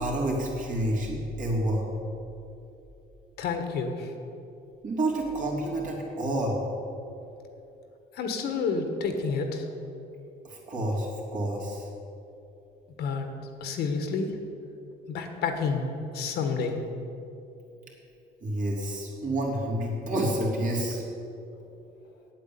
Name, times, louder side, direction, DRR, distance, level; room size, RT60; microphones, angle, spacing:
voice 1, 0.0-1.9 4.8-6.6 10.4-11.9 18.4-21.0, right 1 dB, 50° right, -3 dB, 3.2 m, -29 dB
voice 2, 3.4-4.1 8.1-9.7 13.0-13.3 13.6-14.3 15.1-15.9 16.1-16.8, left 5 dB, 75° left, 5 dB, 1.6 m, -29 dB
8.7 x 8.3 x 8.8 m, 2.8 s
cardioid pair, 110°, 17 cm